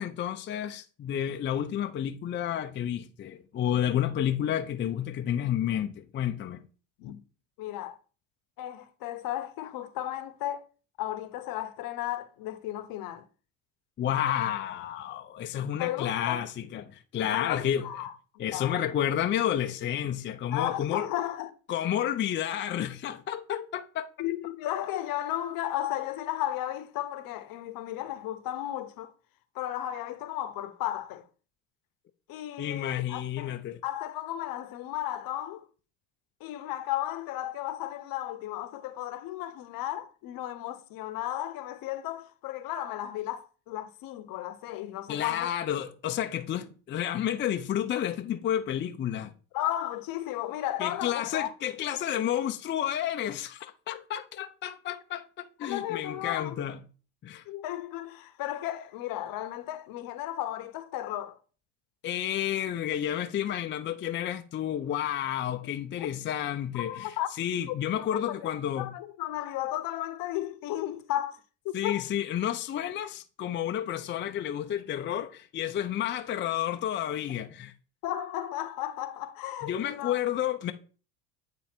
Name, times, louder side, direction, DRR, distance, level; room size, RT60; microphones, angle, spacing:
voice 1, 0.0-6.6 14.0-17.9 18.4-21.1 21.7-24.1 32.6-33.8 45.1-49.3 50.8-56.8 57.2-57.4 62.0-67.1 67.4-68.9 71.7-77.7 79.6-80.7, left 10 dB, 30° left, 0.5 m, -31 dB
voice 2, 7.6-8.0 8.6-10.6 11.0-13.2 15.8-16.4 17.3-18.8 20.5-21.5 24.2-29.1 29.5-31.2 32.3-33.5 33.8-35.7 36.4-45.5 49.5-51.5 55.6-56.6 57.5-61.4 65.6-66.1 66.7-67.3 67.7-71.4 71.6-72.0 78.0-80.2, left 13 dB, 60° left, 0.9 m, -34 dB
8.6 x 3.5 x 4.4 m
supercardioid pair, 90°, 39 cm